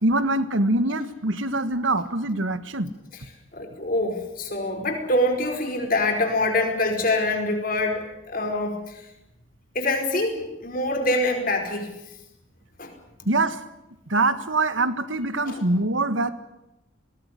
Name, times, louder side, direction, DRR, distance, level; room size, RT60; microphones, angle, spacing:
voice 1, 0.0-2.9 13.3-13.6 14.1-16.3, right 2 dB, 80° right, 12 dB, 1.7 m, -23 dB
voice 2, 3.5-9.0 9.7-11.9 12.8-12.9 15.4-15.6, left 2 dB, 45° left, 3 dB, 5.0 m, -25 dB
20.0 x 19.0 x 9.7 m, 0.90 s
head